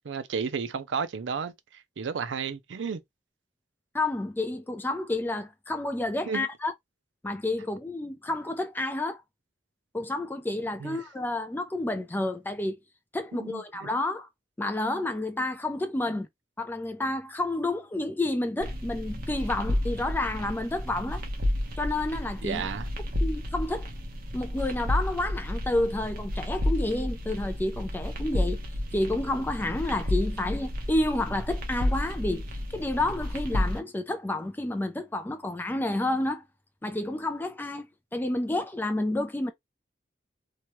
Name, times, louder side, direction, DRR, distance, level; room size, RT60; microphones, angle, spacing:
voice 1, 0.1-1.5 2.0-3.0 6.3-6.5 10.8-11.0 13.3-13.9 22.4-22.9, right 6 dB, 80° right, 0.5 m, -32 dB
voice 2, 3.9-6.7 7.2-9.2 9.9-12.8 13.1-14.3 14.6-16.3 16.6-21.2 21.8-22.6 23.2-23.9 24.3-28.6 28.9-32.4 32.7-36.4 36.8-37.9 38.1-39.5, left 2 dB, 10° left, 0.3 m, -30 dB
sound 1, 18.6-33.8, left 1 dB, 55° right, 0.8 m, -31 dB
2.9 x 2.2 x 3.0 m
head